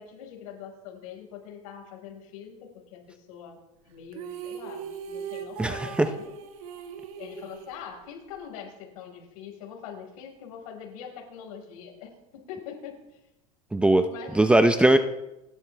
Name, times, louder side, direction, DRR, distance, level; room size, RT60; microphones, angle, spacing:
voice 1, 0.0-3.6 3.8-6.3 7.2-13.0 14.1-14.9, left 8 dB, 75° left, 1 dB, 5.2 m, -43 dB
sound 1, 4.1-8.4, right 7 dB, 75° right, 2.1 m, -39 dB
voice 2, 5.6-6.1 13.7-14.0 14.3-15.0, right 1 dB, 5° right, 9 dB, 0.7 m, -19 dB
28.5 x 12.0 x 3.5 m, 0.91 s
supercardioid pair, 140°, 18 cm